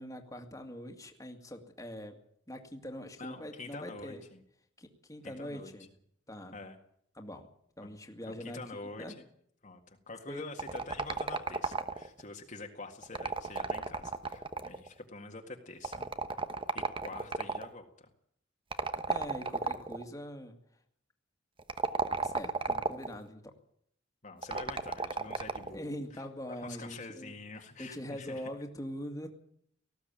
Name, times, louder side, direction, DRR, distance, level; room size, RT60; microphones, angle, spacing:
voice 1, 0.0-2.2 2.5-4.2 4.8-5.9 6.3-6.6 7.1-7.5 7.8-9.1 10.3-10.4 19.1-20.6 22.1-23.5 25.7-27.3 27.8-29.3, equal, 15° left, 4 dB, 2.3 m, -43 dB
voice 2, 3.2-4.4 5.2-5.7 6.5-6.8 8.3-9.2 9.6-16.1 16.7-18.1 24.2-28.4, left 3 dB, 40° left, 3 dB, 1.9 m, -46 dB
sound 1, 10.6-12.2 13.0-14.9 15.8-17.7 18.7-20.0 21.6-23.2 24.4-25.8, right 4 dB, 25° right, 1.1 m, -33 dB
19.0 x 15.5 x 9.0 m, 0.67 s
head